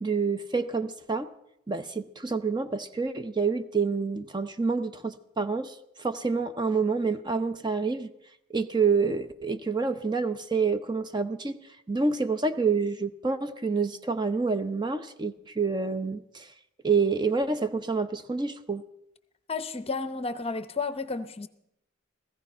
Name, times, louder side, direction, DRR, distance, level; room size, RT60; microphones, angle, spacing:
voice 1, 0.0-1.3 1.7-8.1 8.5-11.6 11.9-16.5 16.8-18.8, right 4 dB, 20° right, 0.7 m, -28 dB
voice 2, 19.5-21.5, left 4 dB, 30° left, 0.7 m, -32 dB
16.0 x 15.5 x 5.4 m
head